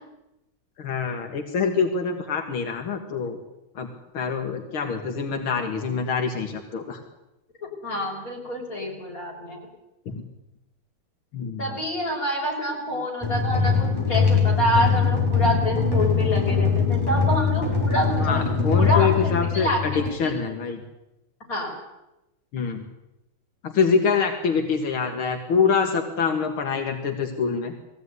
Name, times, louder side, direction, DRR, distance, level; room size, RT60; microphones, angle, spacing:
voice 1, 0.8-3.4 3.8-7.0 10.1-10.3 11.3-11.6 18.2-20.8 22.5-22.8 23.6-27.7, left 5 dB, 90° left, 3 dB, 2.7 m, -25 dB
voice 2, 7.8-9.6 11.6-18.4 18.7-20.4 21.5-21.8, equal, 40° left, -1 dB, 7.0 m, -27 dB
sound 1, 13.2-20.1, left 5 dB, 10° left, 6.1 m, -22 dB
21.0 x 16.0 x 9.7 m, 0.92 s
omnidirectional pair, 2.2 m